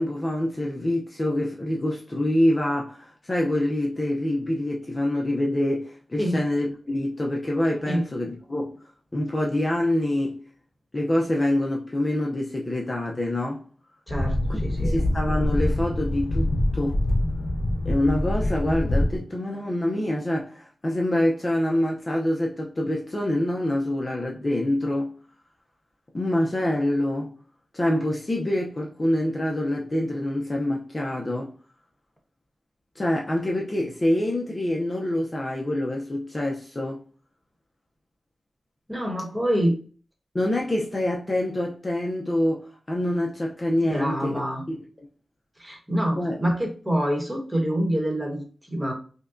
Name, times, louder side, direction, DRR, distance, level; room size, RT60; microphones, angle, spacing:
voice 1, 0.0-8.7 9.1-10.4 10.9-13.6 14.5-14.6 14.8-17.0 17.8-25.1 26.1-27.3 27.7-31.5 33.0-37.0 40.3-44.3 44.7-44.8 46.1-46.4, left 1 dB, 30° left, 0.6 m, -26 dB
sound 1, 14.1-19.2, left 1 dB, 60° left, 0.8 m, -25 dB
voice 2, 14.1-15.0 38.9-39.8 43.9-44.6 45.6-48.9, equal, 10° right, 1.1 m, -26 dB
5.1 x 2.2 x 2.5 m
wide cardioid pair, 110°, 0 cm